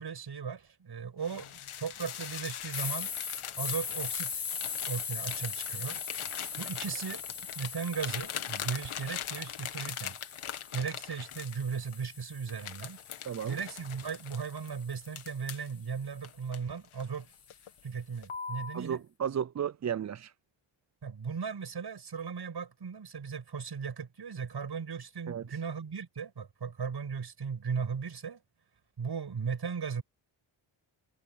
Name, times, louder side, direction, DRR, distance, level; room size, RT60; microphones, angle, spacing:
voice 1, 0.0-3.1 3.6-4.4 4.9-6.0 6.6-7.2 7.5-10.2 10.7-13.0 13.4-17.3 17.8-19.0 21.0-28.4 29.0-30.0, right 6 dB, 50° right, 6.1 m, -37 dB
sound 1, 1.2-12.0 12.5-15.7 16.2-17.2 17.5-17.8 18.2-18.8, left 9 dB, 80° left, 2.1 m, -41 dB
sound 2, 2.7-10.8 11.3-15.5, left 6 dB, 55° left, 4.9 m, -40 dB
voice 2, 13.2-13.6 18.7-20.3 25.3-25.4, right 8 dB, 35° right, 0.5 m, -34 dB
cardioid pair, 80°, 49 cm